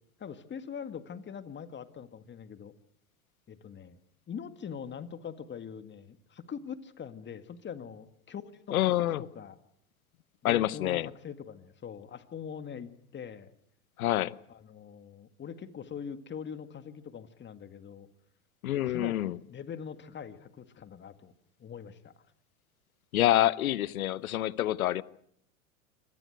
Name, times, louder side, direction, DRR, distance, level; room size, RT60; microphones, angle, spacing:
voice 1, 0.2-2.7 3.5-4.0 4.3-9.6 10.4-13.5 14.5-18.1 18.9-21.3 21.6-22.1, left 7 dB, 25° left, 2.1 m, -43 dB
voice 2, 8.7-9.2 10.4-11.1 14.0-14.3 18.6-19.4 23.1-25.0, left 14 dB, 80° left, 1.0 m, -27 dB
26.0 x 19.0 x 8.1 m
hypercardioid pair, 100°, 42 cm